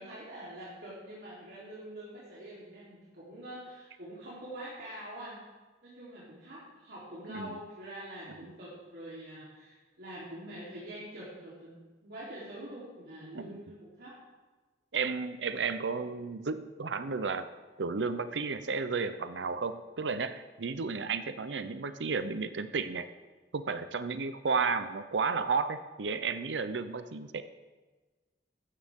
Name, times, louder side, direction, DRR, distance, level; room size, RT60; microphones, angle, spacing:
voice 1, 0.0-5.4 5.8-14.1, right 1 dB, 65° right, -8 dB, 3.6 m, -45 dB
voice 2, 14.9-17.5 17.8-23.1 23.5-27.4, right 5 dB, 80° right, 11 dB, 0.6 m, -33 dB
15.5 x 13.5 x 3.7 m, 1.3 s
head